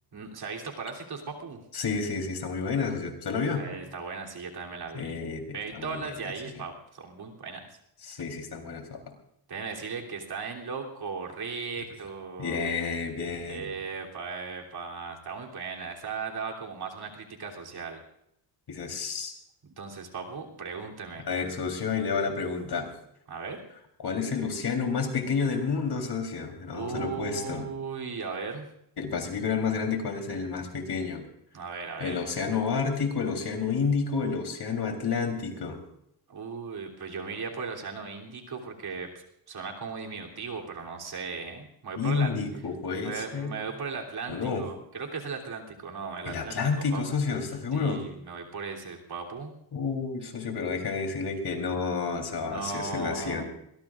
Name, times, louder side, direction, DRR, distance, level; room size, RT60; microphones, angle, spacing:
voice 1, 0.1-1.6 3.5-5.1 5.5-7.7 9.5-12.7 13.5-18.0 19.6-21.2 23.3-23.6 26.7-28.7 31.5-32.2 36.3-39.1 39.5-42.3 43.0-46.6 46.9-47.0 47.7-49.5 52.4-53.4, right 5 dB, 55° right, 0 dB, 3.3 m, -37 dB
voice 2, 1.7-3.7 4.9-6.1 8.0-9.0 12.4-13.7 18.7-19.3 21.3-22.9 24.0-27.7 29.0-31.2 32.0-35.8 42.0-43.5 44.3-44.7 46.3-48.0 49.7-53.4, left 5 dB, 55° left, 4 dB, 3.8 m, -30 dB
22.5 x 20.5 x 2.5 m, 0.76 s
cardioid pair, 90°, 47 cm